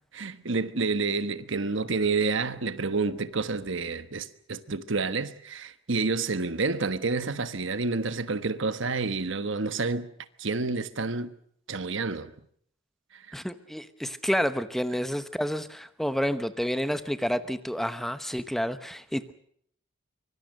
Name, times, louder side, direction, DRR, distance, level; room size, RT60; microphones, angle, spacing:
voice 1, 0.1-10.1 10.4-11.3 11.7-12.3 13.1-13.4, right 4 dB, 65° right, 1.3 m, -29 dB
voice 2, 13.3-19.3, equal, ahead, 0.9 m, -29 dB
24.5 x 24.0 x 6.6 m
head